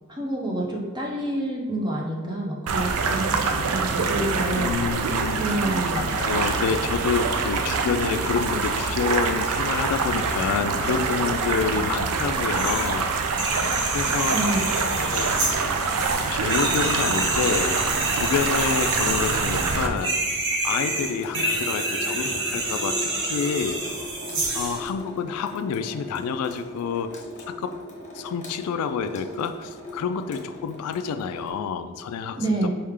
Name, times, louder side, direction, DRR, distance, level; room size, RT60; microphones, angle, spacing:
voice 1, 0.1-4.7 5.4-6.2 14.3-14.6 32.4-32.7, right 1 dB, 20° right, -2 dB, 0.7 m, -28 dB
sound 1, 2.7-19.9, right 4 dB, 85° right, 0.4 m, -25 dB
voice 2, 4.6-5.4 5.9-13.1 13.9-14.4 15.1-15.3 16.3-17.8 18.1-20.2 20.6-23.8 24.5-27.8 28.1-32.7, left 6 dB, 90° left, 12 dB, 0.3 m, -28 dB
sound 2, 12.5-12.9 13.3-24.8, right 2 dB, 60° right, 0.9 m, -28 dB
Water tap faucet / Sink (filling or washing) / Drip, 20.7-31.5, left 1 dB, 35° left, 0.8 m, -38 dB
4.6 x 3.3 x 3.6 m, 1.6 s
head